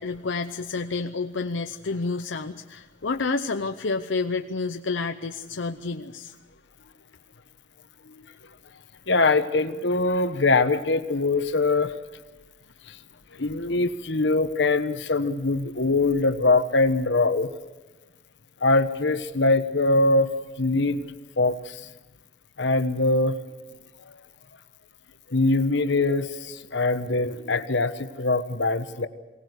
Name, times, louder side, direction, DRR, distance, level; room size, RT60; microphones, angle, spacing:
voice 1, 0.0-6.3 13.3-13.4, left 4 dB, 85° left, 6 dB, 0.8 m, -29 dB
voice 2, 9.1-12.0 12.9-13.0 13.4-17.5 18.6-20.3 20.6-21.0 21.4-21.9 22.6-23.4 25.3-29.1, left 3 dB, 70° left, 10 dB, 1.2 m, -23 dB
23.5 x 18.0 x 8.2 m, 1.2 s
head